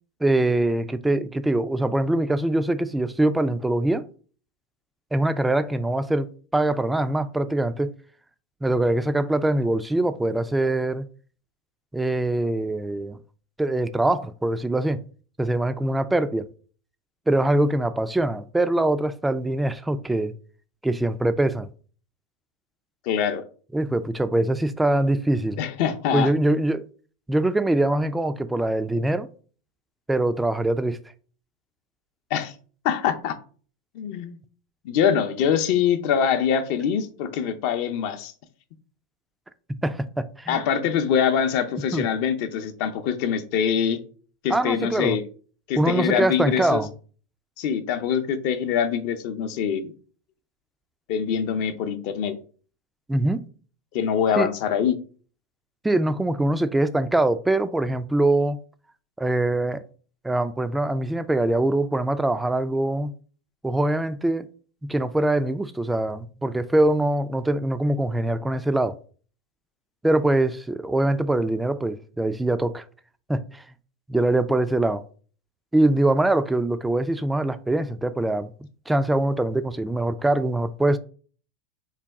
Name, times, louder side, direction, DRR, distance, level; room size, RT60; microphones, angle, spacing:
voice 1, 0.2-4.0 5.1-7.9 8.6-11.0 11.9-13.2 13.6-15.0 15.4-16.5 17.3-20.3 20.8-21.7 23.7-25.6 26.1-26.9 27.3-29.3 30.1-31.0 39.8-40.6 41.9-42.1 44.5-45.2 45.8-46.9 53.1-53.4 54.4-54.5 55.8-58.6 59.2-59.8 60.2-63.1 63.6-64.5 64.8-69.0 70.0-72.8 73.3-73.6 74.1-75.0 75.7-78.5 78.9-81.0, right 1 dB, 10° right, 0.3 m, -23 dB
voice 2, 23.0-23.4 25.6-26.3 32.3-32.5 32.8-33.4 33.9-34.4 34.8-38.3 40.5-44.0 44.4-45.2 45.7-46.8 47.6-49.9 51.1-52.4 53.9-55.0, left 8 dB, 60° left, 0.6 m, -24 dB
4.0 x 2.2 x 3.5 m
hypercardioid pair, 100°, 0 cm